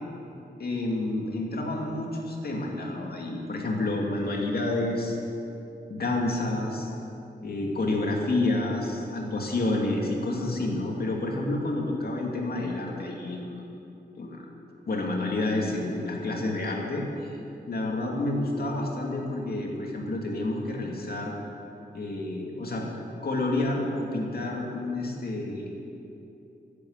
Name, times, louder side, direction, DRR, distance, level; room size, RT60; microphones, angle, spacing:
voice 1, 0.6-5.2 5.9-6.9 7.4-13.6 14.1-14.5 14.9-17.1 17.7-21.3 21.9-22.9 23.2-25.9, left 2 dB, 60° left, -1 dB, 2.5 m, -29 dB
11.0 x 9.1 x 9.7 m, 2.8 s
wide cardioid pair, 90°, 18 cm